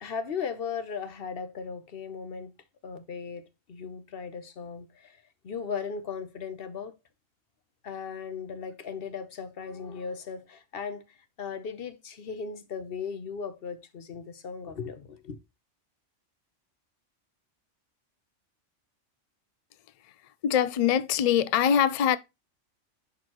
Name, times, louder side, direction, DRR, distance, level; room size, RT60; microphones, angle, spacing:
voice 1, 0.0-2.5 2.8-5.2 5.4-6.9 7.8-15.4, left 6 dB, 55° left, 1.1 m, -37 dB
voice 2, 20.4-22.2, left 9 dB, 75° left, 0.3 m, -23 dB
10.5 x 4.1 x 3.0 m
omnidirectional pair, 1.2 m